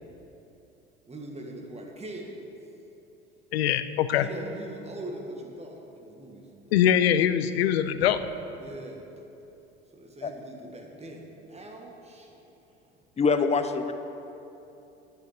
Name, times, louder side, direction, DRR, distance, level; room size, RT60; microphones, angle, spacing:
voice 1, 1.1-2.5 4.1-6.8 8.5-9.1 9.9-12.4 13.0-13.1, right 1 dB, 20° right, 1 dB, 1.8 m, -41 dB
voice 2, 3.5-4.3 6.7-8.2, left 10 dB, 80° left, 12 dB, 0.6 m, -22 dB
voice 3, 13.2-13.9, left 5 dB, 20° left, 9 dB, 0.7 m, -24 dB
9.2 x 9.2 x 5.1 m, 2.9 s
hypercardioid pair, 70°, 31 cm